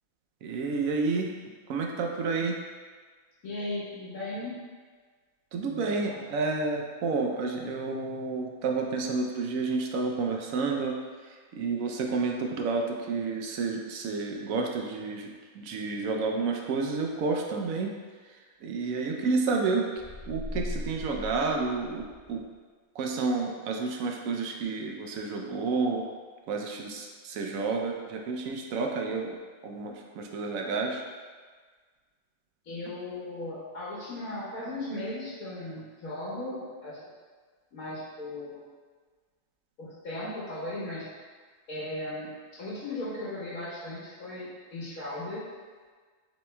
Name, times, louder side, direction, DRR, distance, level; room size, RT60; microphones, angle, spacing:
voice 1, 0.4-1.3 1.7-2.6 5.5-11.0 11.2-17.9 18.6-19.8 20.3-22.4 22.9-26.1 26.5-29.4 29.6-31.0, right 4 dB, 75° right, 1 dB, 1.0 m, -30 dB
voice 2, 3.4-4.6 5.7-6.2 18.8-18.9 32.6-37.0 37.7-38.6 39.8-41.1 41.7-42.3 42.6-45.4, left 1 dB, 90° left, -9 dB, 1.7 m, -37 dB
sound 1, 20.0-22.4, left 1 dB, 25° left, 1.2 m, -38 dB
7.6 x 3.1 x 2.2 m, 1.5 s
omnidirectional pair, 1.5 m